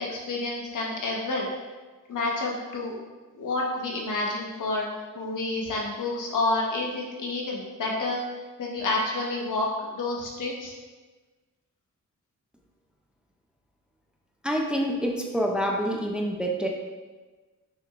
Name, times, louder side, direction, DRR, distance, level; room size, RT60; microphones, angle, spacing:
voice 1, 0.0-1.5 2.1-2.9 3.4-4.9 5.1-8.2 8.6-9.7 9.9-10.7, left 2 dB, 75° left, -2 dB, 1.3 m, -29 dB
voice 2, 14.4-16.7, equal, 5° right, 0 dB, 0.6 m, -27 dB
6.1 x 6.1 x 2.5 m, 1.3 s
wide cardioid pair, 120°, 32 cm